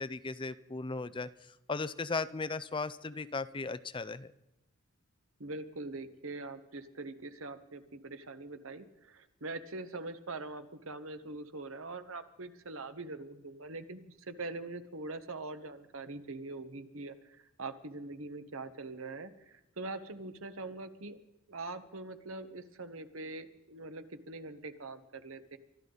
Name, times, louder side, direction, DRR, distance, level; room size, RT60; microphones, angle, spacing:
voice 1, 0.0-4.3, left 3 dB, 25° left, 14 dB, 0.5 m, -37 dB
voice 2, 5.4-14.0 14.3-17.1 17.6-21.2 21.5-25.6, right 2 dB, 70° right, 9 dB, 1.3 m, -43 dB
24.5 x 12.5 x 4.0 m, 0.88 s
head